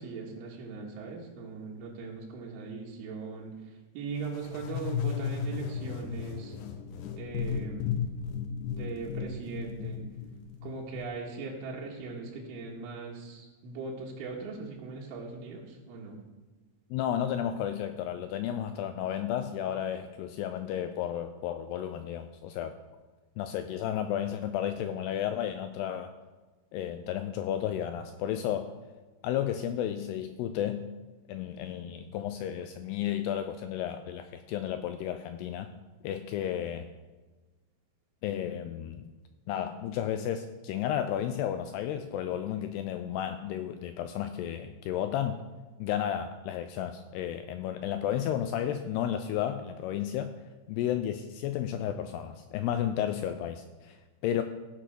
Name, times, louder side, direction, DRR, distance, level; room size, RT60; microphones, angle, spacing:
voice 1, 0.0-3.6 3.9-6.6 7.1-8.0 8.8-10.1 10.6-16.2, right 4 dB, 90° right, -3 dB, 4.2 m, -39 dB
sound 1, 4.3-11.0, left 7 dB, 75° left, 2.8 m, -35 dB
voice 2, 16.9-22.7 23.4-26.1 26.7-28.7 29.2-30.8 31.3-35.7 36.0-36.9 38.2-39.1 39.5-45.4 45.8-50.3 50.7-54.0 54.2-54.4, left 10 dB, 90° left, 8 dB, 2.3 m, -32 dB
16.0 x 6.8 x 5.9 m, 1.2 s
omnidirectional pair, 5.4 m